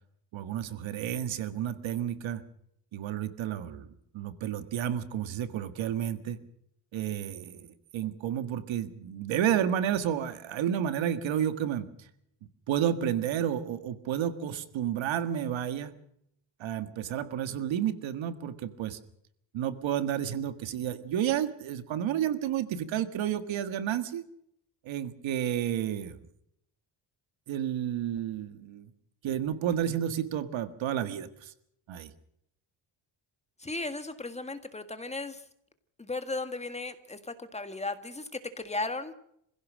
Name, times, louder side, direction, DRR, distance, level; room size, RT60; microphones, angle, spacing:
voice 1, 0.3-2.4 2.9-3.9 4.1-6.4 6.9-12.1 12.7-16.0 16.6-19.0 19.5-24.2 24.9-26.2 27.5-28.9 29.2-31.5 31.9-32.1, right 10 dB, 85° right, 11 dB, 1.8 m, -31 dB
voice 2, 33.6-35.4 36.0-39.2, left 2 dB, 15° left, 10 dB, 1.7 m, -36 dB
26.0 x 16.0 x 6.3 m, 0.73 s
cardioid pair, 130°, 45 cm